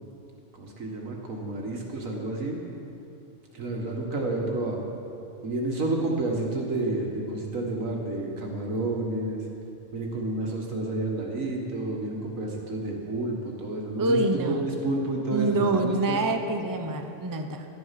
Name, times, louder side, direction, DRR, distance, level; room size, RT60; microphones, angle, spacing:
voice 1, 0.6-2.6 3.5-4.8 5.4-9.4 9.9-16.2, right 2 dB, 80° right, 0 dB, 2.1 m, -30 dB
voice 2, 14.0-14.7 15.3-17.7, right 2 dB, 20° right, 5 dB, 0.6 m, -26 dB
12.0 x 11.5 x 5.8 m, 2.6 s
omnidirectional pair, 1.4 m